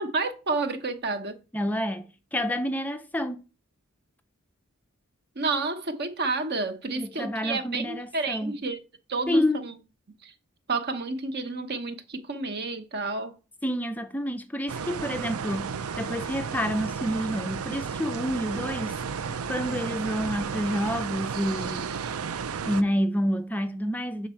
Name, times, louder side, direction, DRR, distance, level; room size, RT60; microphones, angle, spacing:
voice 1, 0.0-1.4 5.4-8.8 9.1-9.8 10.2-10.3 10.7-13.4, right 3 dB, 50° right, 1.0 m, -30 dB
voice 2, 1.5-3.4 7.0-8.6 9.3-9.6 13.6-19.0 19.4-21.9 22.6-24.3, equal, 10° left, 0.4 m, -29 dB
sound 1, 14.7-22.8, right 6 dB, 85° right, 0.5 m, -33 dB
7.3 x 3.9 x 5.6 m
head